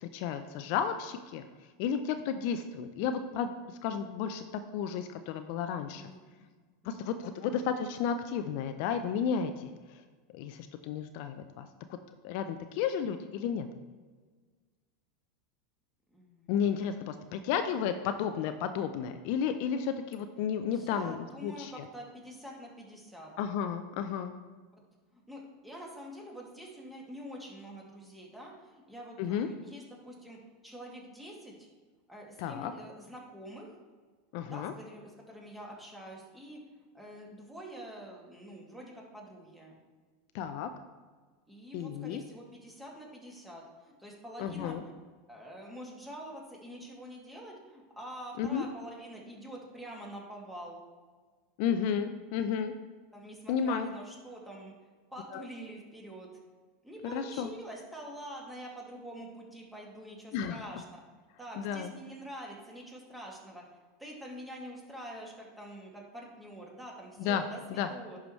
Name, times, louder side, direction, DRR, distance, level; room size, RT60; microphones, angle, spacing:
voice 1, 0.0-1.4 1.8-4.4 4.7-6.1 6.8-10.0 10.3-11.7 12.2-13.7 16.5-21.9 23.4-24.3 29.2-29.5 32.4-32.7 34.3-34.7 40.3-40.7 41.7-42.2 44.4-44.8 48.4-48.6 51.6-52.7 53.5-53.9 55.3-55.5 57.0-57.5 60.3-60.6 61.6-61.9 67.2-67.4 67.8-67.9, left 7 dB, 60° left, 8 dB, 0.5 m, -32 dB
voice 2, 5.9-6.4 6.8-7.5 16.1-16.5 20.7-23.3 25.1-30.4 30.6-31.7 32.1-33.8 34.4-39.8 41.5-44.9 45.3-50.8 53.1-54.7 55.1-56.3 56.8-61.0 61.4-63.6 64.0-68.2, equal, 5° right, -2 dB, 2.2 m, -46 dB
11.0 x 4.9 x 3.1 m, 1.4 s
hypercardioid pair, 90°, 0 cm